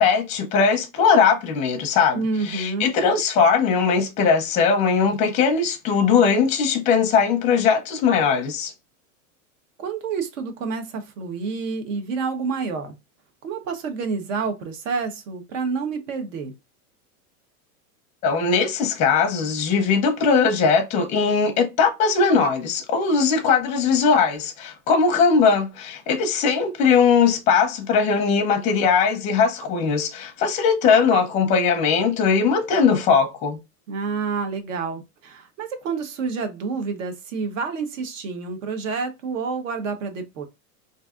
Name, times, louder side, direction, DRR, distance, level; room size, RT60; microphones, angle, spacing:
voice 1, 0.0-8.7 18.2-33.6, left 5 dB, 15° left, 0.6 m, -20 dB
voice 2, 2.1-3.0 9.8-12.9 13.4-16.5 33.9-40.5, right 4 dB, 60° right, 1.1 m, -28 dB
3.9 x 2.7 x 2.4 m
supercardioid pair, 165°, 43 cm